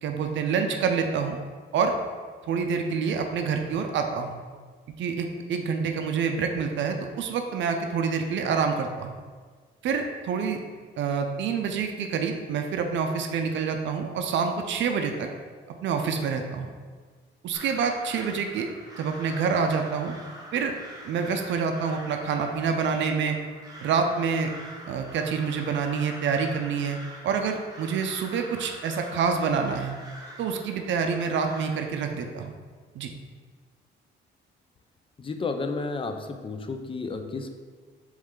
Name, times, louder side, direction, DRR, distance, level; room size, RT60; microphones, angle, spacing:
voice 1, 0.0-1.4 1.7-2.0 2.5-4.3 5.0-9.2 9.8-10.6 11.0-15.3 15.8-16.7 17.4-18.7 19.0-20.1 20.5-20.8 21.0-23.4 23.8-24.5 24.9-27.0 27.2-29.9 30.4-32.5 33.0-33.1, right 6 dB, 70° right, 4 dB, 0.5 m, -27 dB
Crow, 17.5-31.7, right 1 dB, 20° right, 0.9 m, -45 dB
voice 2, 35.2-37.5, left 3 dB, 25° left, 6 dB, 0.4 m, -32 dB
4.2 x 3.1 x 3.7 m, 1.5 s
cardioid pair, 90°, 20 cm